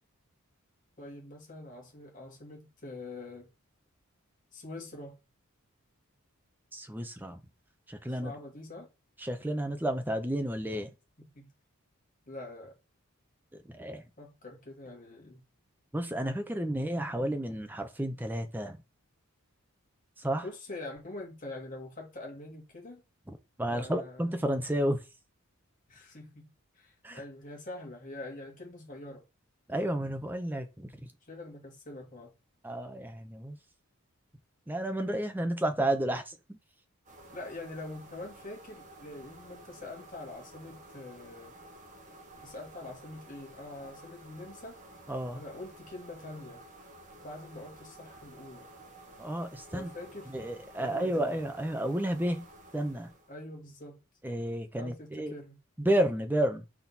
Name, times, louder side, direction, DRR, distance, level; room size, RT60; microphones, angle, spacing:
voice 1, 1.0-3.5 4.5-5.2 8.1-8.9 11.4-11.5 12.3-12.7 14.2-15.4 20.4-23.0 23.7-24.3 25.9-26.4 26.7-29.2 31.3-32.3 37.3-41.5 42.4-44.8 45.3-46.6 47.2-48.7 49.7-50.3 50.8-51.3 53.3-54.0 54.8-55.6, left 2 dB, 35° left, 2.2 m, -44 dB
voice 2, 6.7-7.4 7.9-8.3 9.2-10.9 13.6-14.0 15.9-18.8 20.2-20.4 23.3-25.0 27.0-27.2 29.7-31.1 32.6-33.6 34.7-36.6 45.1-45.4 49.2-49.9 50.3-52.5 52.7-53.1 54.2-55.3 55.8-56.6, right 1 dB, 10° right, 0.7 m, -31 dB
sound 1, 37.1-53.4, right 1 dB, 35° right, 1.5 m, -52 dB
6.0 x 4.2 x 4.1 m
head